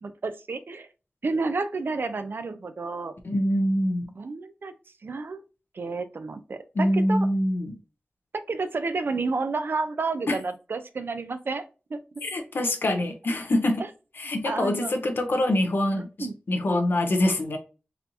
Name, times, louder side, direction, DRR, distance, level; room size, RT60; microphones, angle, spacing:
voice 1, 0.0-0.9 1.2-3.1 4.2-4.7 5.0-5.4 5.7-7.3 8.5-11.6 11.9-12.0 14.4-14.9 16.2-16.3, right 3 dB, 75° right, 10 dB, 0.5 m, -30 dB
voice 2, 3.2-4.1 6.8-7.8 10.3-10.4 12.2-13.8 14.2-17.6, left 1 dB, 90° left, 5 dB, 0.6 m, -25 dB
4.0 x 2.8 x 2.6 m, 0.33 s
wide cardioid pair, 55°, 4 cm